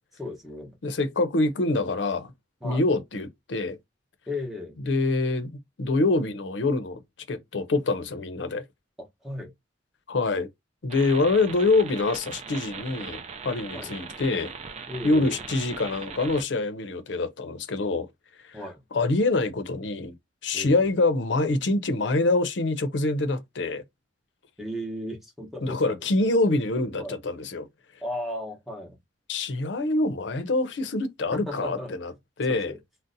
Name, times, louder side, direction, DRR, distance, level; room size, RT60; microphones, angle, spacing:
voice 1, 0.1-0.8 2.6-2.8 4.3-4.8 9.0-9.5 13.7-13.9 14.9-15.4 18.5-18.8 20.5-20.9 24.6-25.8 27.0-27.2 28.0-29.0 31.3-31.9 32.5-32.8, left 1 dB, ahead, 0.9 m, -35 dB
voice 2, 0.8-2.3 2.6-3.8 4.9-7.0 7.3-8.6 10.1-10.5 10.8-14.5 15.0-18.1 18.4-18.6 18.9-20.1 20.4-23.8 25.6-27.7 29.3-32.1 32.4-32.7, left 2 dB, 75° left, 0.6 m, -25 dB
sound 1, 10.9-16.4, right 5 dB, 40° right, 0.4 m, -39 dB
2.6 x 2.0 x 3.8 m
head